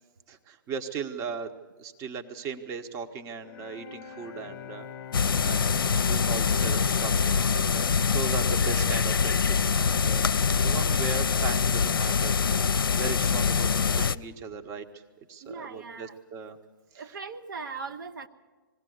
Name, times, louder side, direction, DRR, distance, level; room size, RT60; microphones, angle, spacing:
voice 1, 0.3-1.5 1.8-4.9 5.4-5.7 6.0-10.3 10.6-12.3 13.0-15.0 15.3-16.6 16.9-17.2, right 5 dB, 25° right, 6 dB, 1.2 m, -37 dB
Bowed string instrument, 3.4-9.4, left 8 dB, 30° left, 1.0 m, -44 dB
sound 1, 5.1-14.2, left 5 dB, 75° left, 0.6 m, -24 dB
voice 2, 15.4-16.2 16.9-18.3, right 4 dB, 60° right, 6 dB, 1.2 m, -39 dB
21.0 x 16.0 x 8.0 m, 1.3 s
figure-of-eight pair, 125°, 12 cm